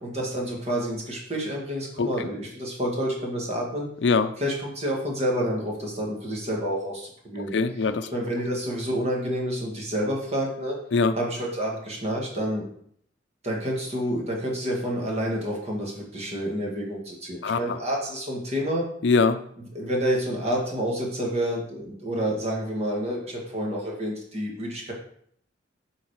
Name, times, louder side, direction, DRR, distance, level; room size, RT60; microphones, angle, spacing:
voice 1, 0.0-3.9 4.4-7.5 8.1-10.8 11.2-12.6 13.4-18.9 19.8-24.9, equal, 35° right, -1 dB, 1.8 m, -29 dB
voice 2, 4.0-4.3 7.5-8.1 10.9-11.1 17.4-17.6 19.0-19.4, left 4 dB, 70° left, 10 dB, 0.5 m, -22 dB
7.3 x 4.0 x 4.8 m, 0.65 s
head